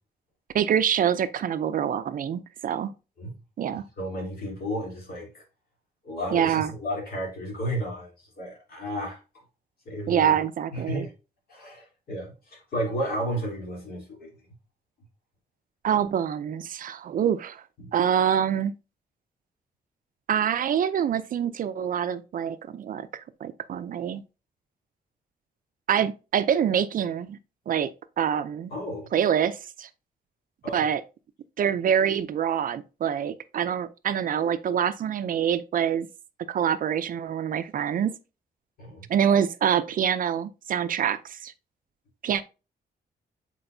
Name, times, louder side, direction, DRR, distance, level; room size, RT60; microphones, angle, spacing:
voice 1, 0.5-2.9 3.6-3.8 6.3-6.7 10.1-11.1 15.8-17.6 17.9-18.7 20.3-24.2 25.9-27.4 27.7-27.9 28.2-28.7 29.1-29.9 30.7-31.0 31.6-36.1 36.5-38.2 39.1-41.5 42.2-42.4, right 8 dB, 55° right, 0.5 m, -25 dB
voice 2, 3.7-5.4 6.0-9.2 9.8-10.3 10.7-11.1 11.5-14.3 17.8-17.9 28.7-29.1 30.6-30.8 38.8-39.1, equal, 65° left, 3.3 m, -33 dB
7.8 x 4.5 x 2.7 m
wide cardioid pair, 160°, 17 cm